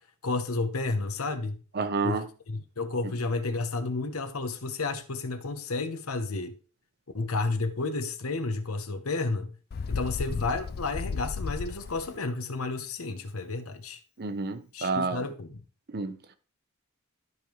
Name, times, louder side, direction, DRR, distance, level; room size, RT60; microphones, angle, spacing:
voice 1, 0.2-1.6 2.0-6.5 7.1-9.5 9.9-14.0 14.7-15.6, left 3 dB, 85° left, 1.0 m, -31 dB
voice 2, 1.7-2.3 14.2-15.2 15.9-16.2, right 4 dB, 50° right, 0.8 m, -29 dB
Bird, 9.7-12.2, left 4 dB, 50° left, 0.4 m, -34 dB
12.5 x 5.3 x 3.1 m
head